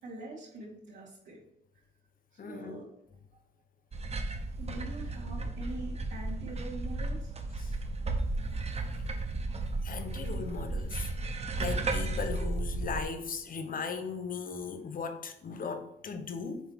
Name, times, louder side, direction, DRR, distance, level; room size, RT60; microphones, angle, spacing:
voice 1, 0.0-1.4 2.3-2.9 4.6-7.4, right 1 dB, 70° right, -9 dB, 2.6 m, -44 dB
voice 2, 2.4-2.8 7.6-7.7 9.8-11.1 11.6-16.6, left 5 dB, 45° left, 7 dB, 1.1 m, -37 dB
sound 1, 3.9-13.0, right 2 dB, 30° right, 0.9 m, -34 dB
7.1 x 4.0 x 4.7 m, 0.79 s
cardioid pair, 90°, 20 cm